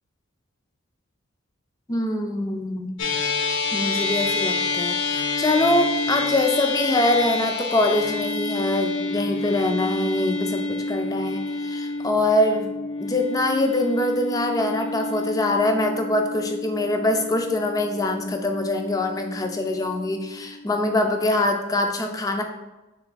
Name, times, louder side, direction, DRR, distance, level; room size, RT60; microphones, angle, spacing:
voice 1, 1.9-2.9 3.7-12.7 13.0-22.4, left 1 dB, 15° left, 4 dB, 0.3 m, -24 dB
sound 1, 3.0-21.5, left 3 dB, 65° left, 0.6 m, -29 dB
3.5 x 3.1 x 3.9 m, 1.1 s
head